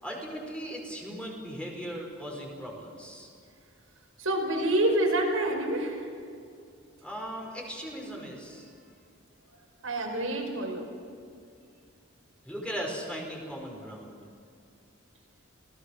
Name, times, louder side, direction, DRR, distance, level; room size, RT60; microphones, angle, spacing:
voice 1, 0.0-3.3 7.0-8.7 12.4-14.2, equal, 5° left, -1 dB, 5.0 m, -38 dB
voice 2, 4.2-6.0 9.8-10.9, right 1 dB, 85° right, 0 dB, 5.5 m, -27 dB
28.5 x 18.0 x 6.5 m, 2.4 s
head